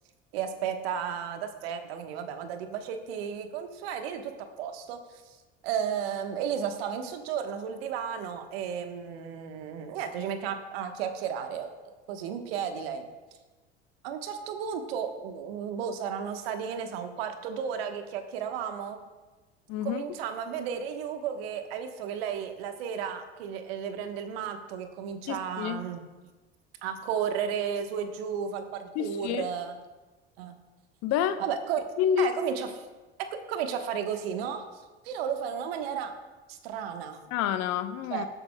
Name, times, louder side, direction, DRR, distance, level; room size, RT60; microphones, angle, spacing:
voice 1, 0.3-4.3 4.6-5.0 5.2-5.4 5.6-13.1 14.0-19.0 19.8-26.0 26.8-29.8 30.4-30.5 31.4-31.8 32.2-32.7 33.5-36.1 36.5-37.2 38.1-38.3, right 8 dB, 70° right, 7 dB, 1.2 m, -33 dB
voice 2, 19.7-20.0 25.3-25.9 29.0-29.5 31.0-31.4 32.0-32.3 37.3-38.3, left 9 dB, 55° left, 11 dB, 0.8 m, -28 dB
20.5 x 7.9 x 2.2 m, 1.2 s
hypercardioid pair, 70°, 31 cm